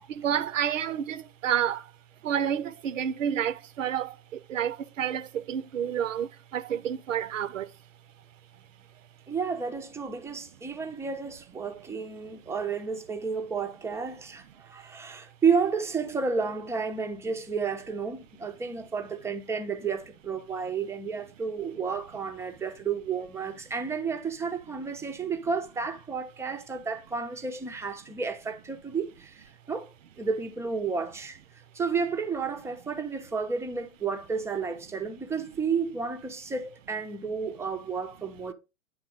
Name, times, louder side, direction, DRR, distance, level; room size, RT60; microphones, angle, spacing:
voice 1, 0.1-1.8 2.2-4.1 4.5-6.3 6.5-7.7, right 9 dB, 70° right, 0.7 m, -29 dB
voice 2, 9.3-31.4 31.7-38.5, right 5 dB, 5° right, 0.6 m, -31 dB
9.5 x 3.7 x 3.7 m
figure-of-eight pair, 100°, 40 cm